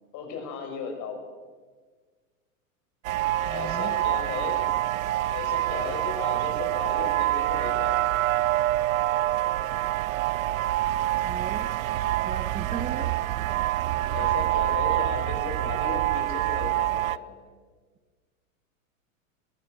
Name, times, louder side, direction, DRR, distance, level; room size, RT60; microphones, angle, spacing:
voice 1, 0.1-1.2 3.4-4.6 5.3-8.1 12.9-13.1 14.1-17.3, left 5 dB, 45° left, 3 dB, 6.2 m, -36 dB
sound 1, 3.0-17.2, right 14 dB, 75° right, 0.7 m, -26 dB
voice 2, 3.5-4.0 11.2-11.8 12.2-13.2, right 7 dB, 15° right, 10 dB, 0.8 m, -37 dB
22.0 x 17.5 x 6.8 m, 1.5 s
hypercardioid pair, 110°, 41 cm